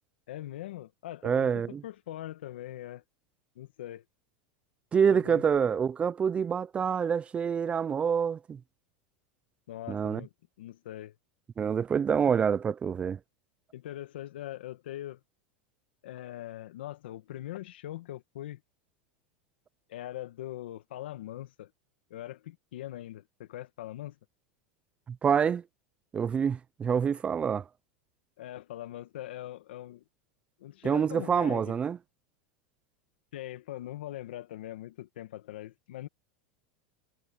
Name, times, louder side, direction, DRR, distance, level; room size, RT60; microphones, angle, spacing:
voice 1, 0.3-3.0 3.6-4.0 5.1-5.4 9.7-10.3 10.6-11.2 13.7-15.2 16.0-18.6 19.9-21.7 22.1-24.2 28.4-30.0 30.6-31.8 33.3-36.1, left 13 dB, 85° left, 1.9 m, -41 dB
voice 2, 1.2-1.8 4.9-8.6 9.9-10.2 11.6-13.2 25.1-25.6 26.1-27.6 30.8-32.0, right 7 dB, 20° right, 0.4 m, -27 dB
supercardioid pair, 130°, 5 cm